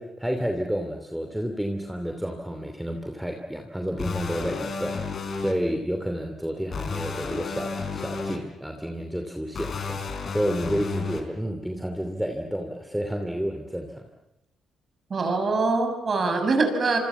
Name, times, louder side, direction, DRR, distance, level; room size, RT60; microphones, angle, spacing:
voice 1, 0.0-14.1, equal, 5° right, 4 dB, 2.8 m, -30 dB
sound 1, 4.0-5.5 6.7-8.4 9.5-11.2, left 4 dB, 50° left, 4.3 m, -32 dB
voice 2, 15.1-17.0, right 3 dB, 40° right, 6 dB, 6.7 m, -23 dB
27.0 x 25.5 x 7.2 m, 0.85 s
cardioid pair, 90°, 0 cm